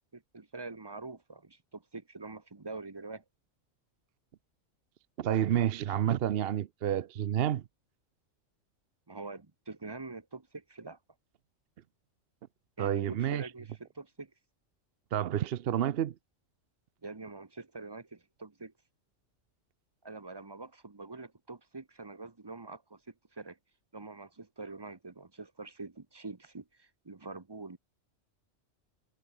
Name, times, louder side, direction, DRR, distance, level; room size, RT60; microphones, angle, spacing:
voice 1, 0.1-3.2 9.1-11.0 12.8-14.3 17.0-18.7 20.0-23.0 23.3-23.6 23.9-27.8, right 3 dB, 20° right, 0.9 m, -45 dB
voice 2, 5.2-7.6 12.8-13.5 15.1-16.1, right 10 dB, 60° right, 0.8 m, -29 dB
omnidirectional pair, 1.3 m